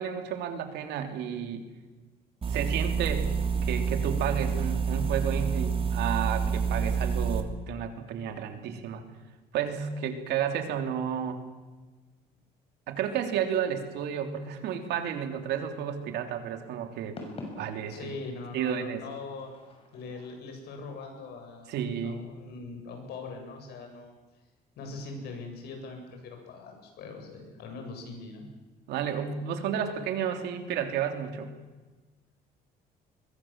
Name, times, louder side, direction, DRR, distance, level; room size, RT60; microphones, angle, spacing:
voice 1, 0.0-1.7 2.5-3.3 3.6-9.0 9.5-11.4 12.9-17.2 17.6-18.1 18.5-19.0 21.7-22.2 28.9-31.5, right 8 dB, 80° right, 6 dB, 3.3 m, -32 dB
sound 1, 2.4-7.4, right 6 dB, 35° right, 2.8 m, -28 dB
sound 2, 13.4-20.5, left 2 dB, 35° left, 6.3 m, -50 dB
voice 2, 17.9-19.5 19.9-21.8 22.0-24.1 24.8-28.5, left 3 dB, 75° left, 3 dB, 8.0 m, -41 dB
24.5 x 22.0 x 7.5 m, 1.2 s
cardioid pair, 110°, 17 cm